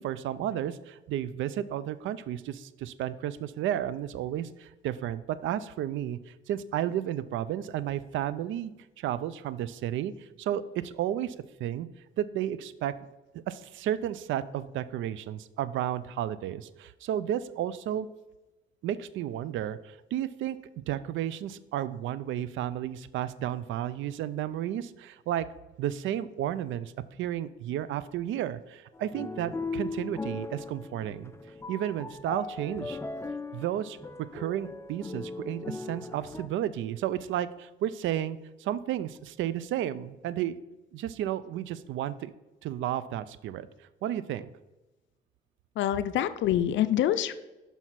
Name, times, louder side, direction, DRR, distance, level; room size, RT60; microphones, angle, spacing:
voice 1, 0.0-8.7 9.0-11.9 12.2-12.9 13.5-18.1 18.8-20.6 20.9-25.5 25.8-26.9 27.2-31.3 31.7-33.0 33.5-34.0 34.3-40.6 40.9-42.3 42.6-43.7 44.0-44.5, right 11 dB, 75° right, 16 dB, 0.4 m, -32 dB
sound 1, 28.9-36.5, left 3 dB, 15° left, 0.4 m, -38 dB
voice 2, 45.8-47.3, left 11 dB, 70° left, 13 dB, 0.4 m, -26 dB
5.7 x 5.5 x 4.6 m, 1.0 s
cardioid pair, 90°, 20 cm